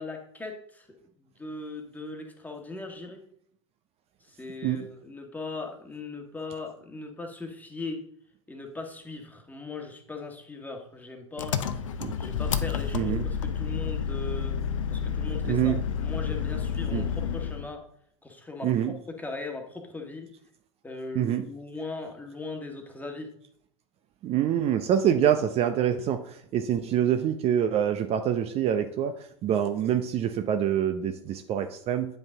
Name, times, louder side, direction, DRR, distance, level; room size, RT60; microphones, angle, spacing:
voice 1, 0.0-3.2 4.2-8.0 8.5-11.6 12.2-14.6 14.9-15.7 16.0-17.8 18.2-18.7 19.1-20.3 20.8-23.3, left 3 dB, 10° left, 3 dB, 1.5 m, -39 dB
Engine, 11.4-17.7, left 7 dB, 80° left, 0.6 m, -30 dB
voice 2, 12.9-13.2 15.4-15.8 16.9-17.0 18.6-18.9 21.2-21.4 24.2-32.1, right 9 dB, 40° right, 7 dB, 0.6 m, -26 dB
9.0 x 5.2 x 3.5 m, 0.66 s
hypercardioid pair, 85°, 16 cm